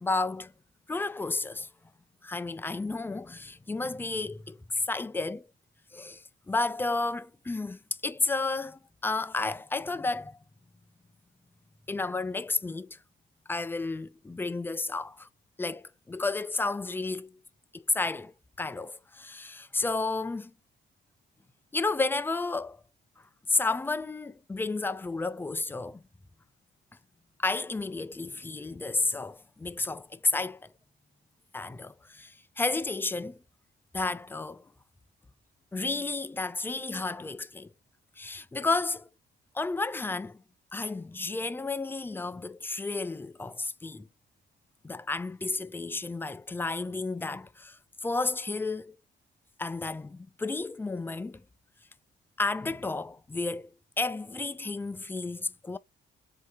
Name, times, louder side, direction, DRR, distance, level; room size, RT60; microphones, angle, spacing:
voice 1, 0.0-0.5 0.9-1.7 2.2-5.5 5.9-10.4 11.9-13.0 13.5-15.3 15.6-17.4 17.7-18.3 18.6-20.5 21.7-22.8 23.5-26.0 27.4-30.7 31.5-33.4 33.9-34.6 35.7-37.7 38.2-39.1 39.5-40.4 40.7-44.1 44.8-49.0 49.6-51.4 52.4-53.7 54.0-55.8, left 3 dB, 10° left, 0.3 m, -32 dB
3.7 x 2.7 x 4.7 m
cardioid pair, 90°, 20 cm